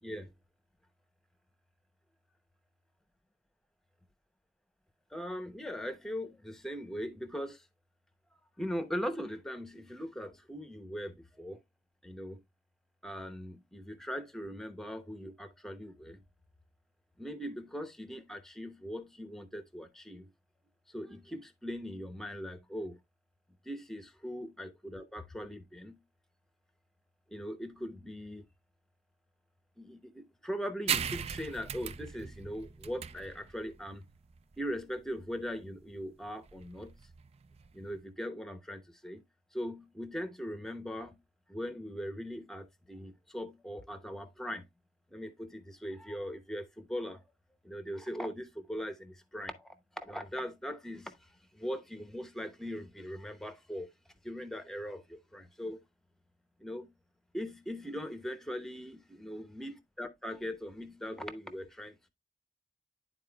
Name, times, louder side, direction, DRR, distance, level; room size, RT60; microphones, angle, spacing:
voice 1, 0.0-0.3 5.1-7.6 8.6-11.6 12.0-12.4 13.0-16.2 17.2-20.3 20.9-23.0 23.6-26.0 27.3-28.5 29.8-34.0 34.6-37.0 37.7-39.2 39.5-41.2 41.5-44.6 45.1-47.2 47.6-49.7 50.0-53.9 54.2-55.8 56.6-56.9 57.3-62.1, equal, ahead, 0.8 m, -40 dB
sound 1, 30.9-38.0, right 8 dB, 35° right, 0.3 m, -39 dB
11.5 x 4.2 x 2.3 m
head